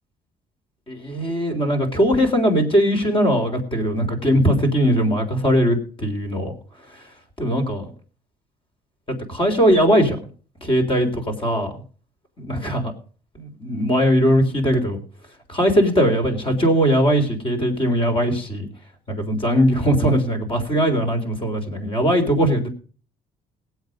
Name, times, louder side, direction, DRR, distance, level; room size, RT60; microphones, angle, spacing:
voice 1, 0.9-6.5 7.4-7.9 9.1-10.2 10.6-11.7 12.4-12.8 13.4-15.0 15.5-18.7 19.1-22.7, equal, 30° left, 4 dB, 3.8 m, -20 dB
18.5 x 8.2 x 5.3 m, 0.42 s
cardioid pair, 110°, 17 cm